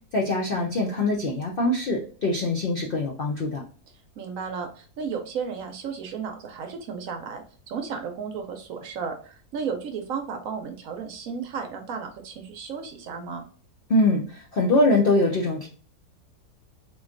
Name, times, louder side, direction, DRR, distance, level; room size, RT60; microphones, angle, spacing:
voice 1, 0.1-3.6 13.9-15.7, left 2 dB, 65° left, -1 dB, 0.5 m, -23 dB
voice 2, 4.2-13.4, right 6 dB, 65° right, 5 dB, 0.9 m, -34 dB
3.9 x 3.0 x 2.5 m, 0.43 s
omnidirectional pair, 1.7 m